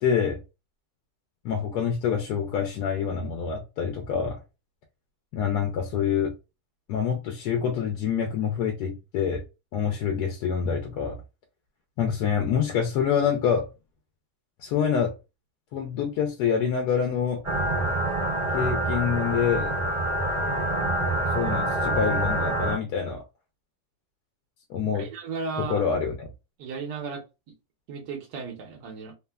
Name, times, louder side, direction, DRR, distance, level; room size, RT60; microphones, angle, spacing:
voice 1, 0.0-0.4 1.4-4.4 5.3-6.3 6.9-9.4 9.7-11.2 12.0-13.7 14.6-15.1 15.7-17.4 18.5-19.7 21.3-23.2 24.7-25.1 25.6-26.3, left 7 dB, 80° left, 1.1 m, -26 dB
sound 1, 17.4-22.8, right 1 dB, 20° right, 1.1 m, -26 dB
voice 2, 24.9-25.8 26.6-27.2 27.9-29.1, right 5 dB, 80° right, 1.3 m, -34 dB
3.2 x 2.1 x 2.2 m
omnidirectional pair, 1.7 m